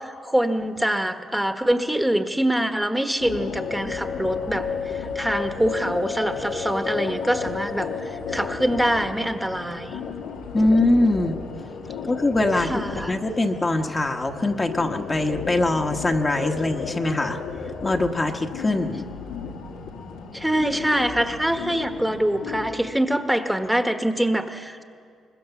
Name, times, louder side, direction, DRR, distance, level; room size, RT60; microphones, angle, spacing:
voice 1, 0.0-4.7 4.9-10.0 12.6-13.1 20.3-24.8, right 1 dB, 5° right, 7 dB, 1.3 m, -24 dB
sound 1, 3.2-22.8, left 5 dB, 90° left, 2.4 m, -33 dB
voice 2, 10.5-11.4 12.0-17.4 17.8-19.1, left 2 dB, 25° left, 3 dB, 1.3 m, -22 dB
23.0 x 20.5 x 7.1 m, 2.2 s
cardioid pair, 90°, 0 cm